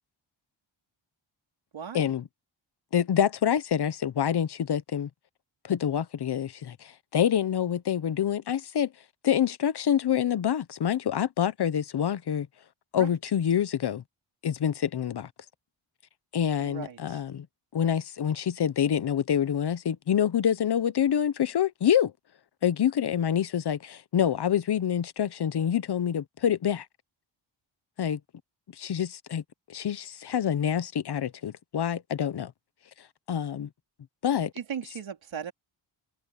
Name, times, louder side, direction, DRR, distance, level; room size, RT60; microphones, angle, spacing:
voice 1, 1.7-2.1 13.0-13.1 16.5-17.3 34.5-35.5, right 8 dB, 70° right, 4.3 m, -38 dB
voice 2, 2.9-5.1 5.6-8.9 9.2-12.5 12.9-14.0 14.4-15.3 16.3-17.5 17.7-22.1 22.6-26.9 28.0-28.2 28.7-29.4 29.7-32.5 33.3-33.7 34.2-34.5, left 9 dB, 55° left, 0.9 m, -26 dB
open air
wide cardioid pair, 155°, 48 cm